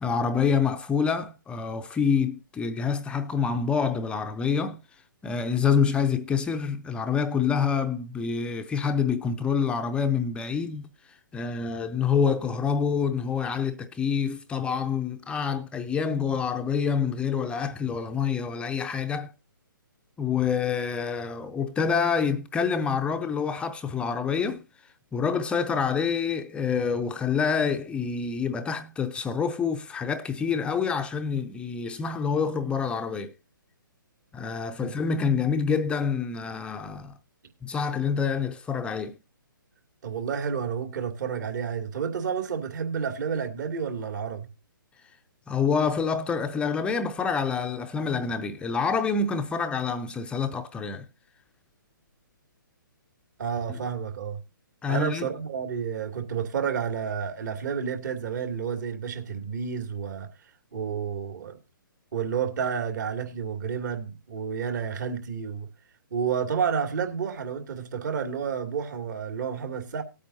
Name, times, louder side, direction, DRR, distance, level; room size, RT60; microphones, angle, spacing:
voice 1, 0.0-4.8 5.2-19.3 20.2-24.6 25.1-33.3 34.3-37.1 37.6-39.2 45.5-51.1 53.7-53.8 54.8-55.3, left 6 dB, 10° left, 0.5 m, -27 dB
voice 2, 40.0-44.5 53.4-54.4 54.9-60.3 60.7-61.6 62.1-65.7 66.1-70.0, right 7 dB, 55° right, 2.6 m, -30 dB
18.5 x 8.6 x 2.7 m
hypercardioid pair, 135°, 11 cm